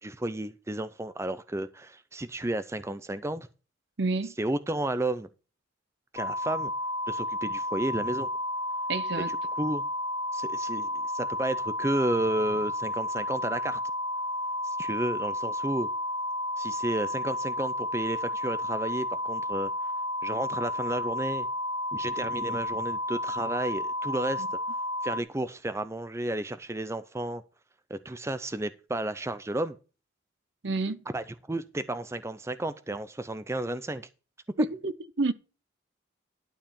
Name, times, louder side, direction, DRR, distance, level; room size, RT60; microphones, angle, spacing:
voice 1, 0.0-3.5 4.4-5.3 6.1-6.7 7.1-8.3 9.2-9.8 10.3-13.8 14.6-15.9 16.6-19.7 20.2-21.5 21.9-24.5 25.0-27.4 27.9-29.8 31.1-34.1, right 1 dB, 15° right, 0.5 m, -32 dB
voice 2, 4.0-4.3 8.9-9.3 24.4-24.5 30.6-31.0 34.6-35.3, right 3 dB, 60° right, 0.8 m, -29 dB
sound 1, 6.2-25.2, left 1 dB, 90° left, 0.9 m, -32 dB
12.0 x 4.7 x 7.0 m
head